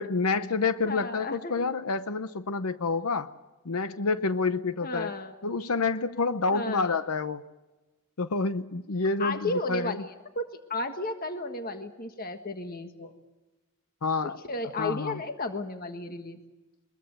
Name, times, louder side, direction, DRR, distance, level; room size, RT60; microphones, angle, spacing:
voice 1, 0.0-3.3 3.6-5.1 5.4-7.4 8.2-10.0 14.0-14.4 14.8-15.2, left 4 dB, 80° left, 12 dB, 0.8 m, -28 dB
voice 2, 0.8-1.5 4.8-5.3 6.5-7.0 9.2-13.1 14.2-16.4, left 2 dB, 40° left, 6 dB, 1.6 m, -33 dB
23.0 x 21.5 x 7.9 m, 1.1 s
head